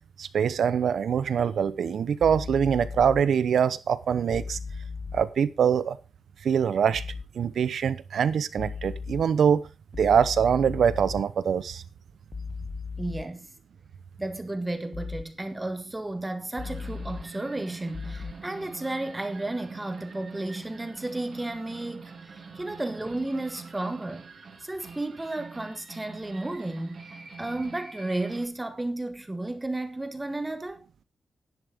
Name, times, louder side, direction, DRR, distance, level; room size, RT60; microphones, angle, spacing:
voice 1, 0.2-4.6 5.1-6.0 6.4-7.0 7.4-9.6 10.0-11.8, right 7 dB, 70° right, 0.8 m, -24 dB
sound 1, 2.2-3.2 4.3-5.2 6.9-7.2 8.6-9.2 9.9-11.2 12.3-13.2 14.9-15.2 16.6-17.2 17.9-18.3, left 5 dB, 30° left, 0.9 m, -36 dB
voice 2, 13.0-13.5 14.2-24.3 24.6-27.1 27.4-30.9, right 2 dB, 10° right, 1.1 m, -33 dB
sound 2, 16.6-28.5, right 4 dB, 45° right, 2.9 m, -45 dB
11.0 x 10.5 x 3.6 m
wide cardioid pair, 170°, 0 cm